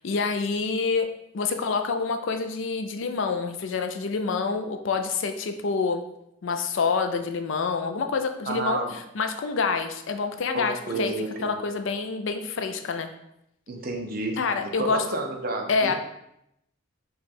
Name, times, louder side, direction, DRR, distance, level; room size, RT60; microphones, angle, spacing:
voice 1, 0.0-1.1 1.3-6.0 6.4-11.1 11.4-13.1 14.4-15.0 15.7-15.9, left 4 dB, 65° left, 7 dB, 0.4 m, -27 dB
voice 2, 8.5-8.9 10.5-11.5 13.7-15.9, right 2 dB, 45° right, 1 dB, 0.6 m, -31 dB
5.0 x 2.3 x 4.2 m, 0.80 s
head